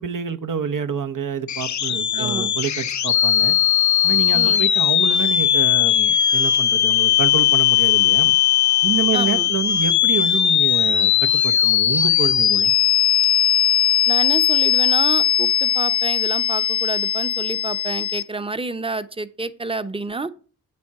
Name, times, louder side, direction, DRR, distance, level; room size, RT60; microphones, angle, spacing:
voice 1, 0.0-3.6 4.0-8.3 8.8-12.7, right 7 dB, 60° right, 8 dB, 1.0 m, -27 dB
sound 1, 1.5-18.2, left 10 dB, 50° left, 0.6 m, -18 dB
voice 2, 2.1-2.5 4.3-4.7 9.1-9.5 14.1-20.3, right 3 dB, 15° right, 13 dB, 0.8 m, -29 dB
8.6 x 6.9 x 4.8 m, 0.38 s
cardioid pair, 50°, 36 cm